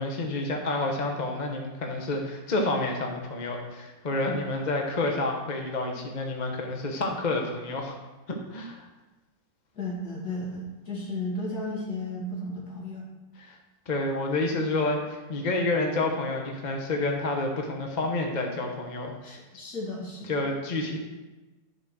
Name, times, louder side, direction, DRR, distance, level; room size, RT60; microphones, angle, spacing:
voice 1, 0.0-7.9 8.3-8.9 13.4-13.6 13.9-19.4 20.3-21.0, left 2 dB, 30° left, 1 dB, 0.9 m, -29 dB
voice 2, 9.8-13.1 19.2-20.4, left 1 dB, 55° left, -4 dB, 2.9 m, -34 dB
11.5 x 5.1 x 6.2 m, 1.1 s
omnidirectional pair, 2.0 m